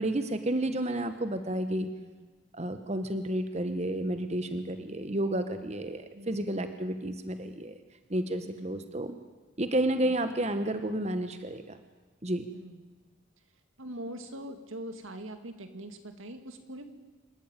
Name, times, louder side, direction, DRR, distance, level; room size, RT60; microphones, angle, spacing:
voice 1, 0.0-1.9 2.5-7.7 8.1-9.2 9.6-11.8 12.2-12.4, right 1 dB, 35° right, 9 dB, 1.1 m, -31 dB
voice 2, 6.1-6.5 8.4-8.8 10.0-10.2 12.5-12.8 13.8-16.9, right 1 dB, 85° right, 7 dB, 2.4 m, -43 dB
27.0 x 14.0 x 9.1 m, 1.3 s
head